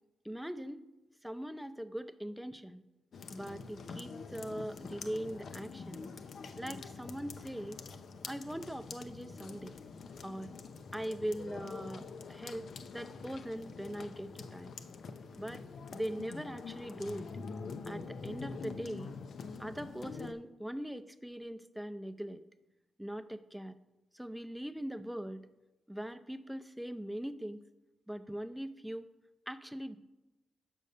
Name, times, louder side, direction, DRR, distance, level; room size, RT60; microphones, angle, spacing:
voice 1, 0.2-0.8 1.2-2.8 3.3-6.1 6.6-7.8 8.3-9.8 10.2-10.5 10.9-12.7 12.9-14.7 15.3-15.6 15.9-17.3 17.9-19.1 19.6-22.4 23.0-23.8 24.1-25.4 25.9-27.6 28.1-29.1 29.5-30.0, equal, 5° right, 10 dB, 0.5 m, -41 dB
sound 1, 3.1-20.3, left 5 dB, 65° left, 0.5 m, -46 dB
5.4 x 5.3 x 6.5 m, 1.1 s
cardioid pair, 65°, 0 cm